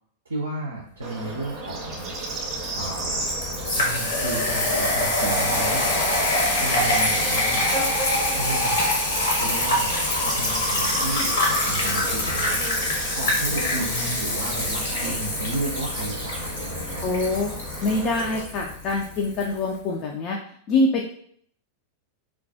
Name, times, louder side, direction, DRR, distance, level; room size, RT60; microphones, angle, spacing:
voice 1, 0.3-2.2 2.8-3.2 3.7-6.1 6.6-7.7 8.3-8.9 9.3-9.9 10.2-12.8 13.1-17.2, right 2 dB, 70° right, -2 dB, 0.4 m, -33 dB
Bird / Insect, 1.0-18.4, right 3 dB, 30° right, 0.6 m, -34 dB
sound 1, 1.5-19.5, left 1 dB, 60° left, 0.8 m, -25 dB
voice 2, 17.0-17.5 17.8-20.4 20.7-21.1, left 2 dB, 40° left, 1 dB, 0.3 m, -24 dB
2.3 x 2.2 x 2.6 m, 0.62 s
figure-of-eight pair, 90°, 0 cm